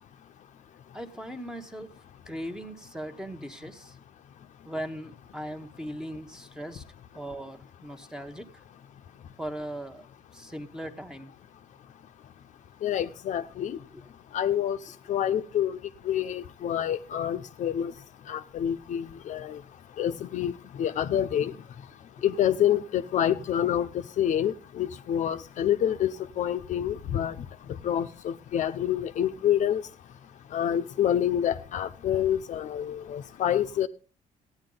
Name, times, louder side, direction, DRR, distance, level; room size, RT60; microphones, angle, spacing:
voice 1, 0.9-1.9 2.3-4.0 4.6-6.8 7.1-8.6 9.4-10.1 10.3-11.3 13.9-14.0 15.3-15.4, equal, 5° right, 1.1 m, -39 dB
voice 2, 12.8-13.8 14.3-14.8 15.1-15.8 16.1-17.9 18.3-19.6 20.0-20.5 20.8-21.5 22.2-23.9 24.2-27.3 27.8-29.8 30.5-33.9, left 10 dB, 55° left, 0.7 m, -27 dB
15.0 x 9.6 x 3.9 m
cardioid pair, 145°, 15 cm